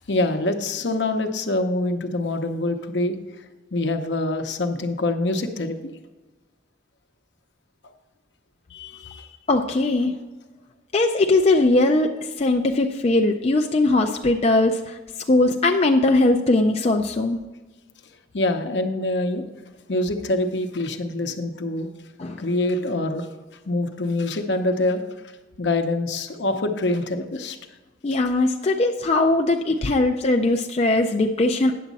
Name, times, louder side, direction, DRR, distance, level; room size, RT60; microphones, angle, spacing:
voice 1, 0.1-3.2 3.7-5.8 8.7-9.3 18.3-19.4 19.9-21.9 22.4-23.3 23.7-25.0 25.6-27.6, left 2 dB, 65° left, 6 dB, 0.8 m, -25 dB
voice 2, 9.5-10.1 10.9-12.1 12.4-15.0 15.3-17.4 22.2-22.4 28.0-31.7, left 2 dB, 35° left, 3 dB, 0.4 m, -20 dB
9.3 x 7.2 x 4.0 m, 1.2 s
head